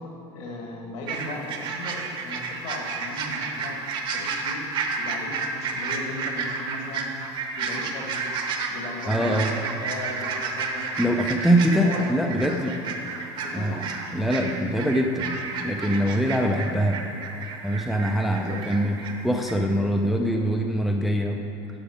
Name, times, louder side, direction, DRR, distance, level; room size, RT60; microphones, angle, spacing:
voice 1, 0.3-3.8 4.1-4.6 5.0-7.1 7.6-8.2 8.7-10.8 11.7-12.1 13.4-13.9 16.3-16.5 18.3-18.6, left 2 dB, 60° left, 0 dB, 1.7 m, -37 dB
sound 1, 1.1-19.1 19.4-19.5, right 4 dB, 40° right, 0.8 m, -31 dB
voice 2, 9.1-9.5 11.0-12.8 13.5-13.9 14.1-15.3 15.6-17.0 17.6-19.0 19.2-21.4, equal, ahead, 2 dB, 0.3 m, -23 dB
10.0 x 6.0 x 5.0 m, 2.8 s
cardioid pair, 160°, 13 cm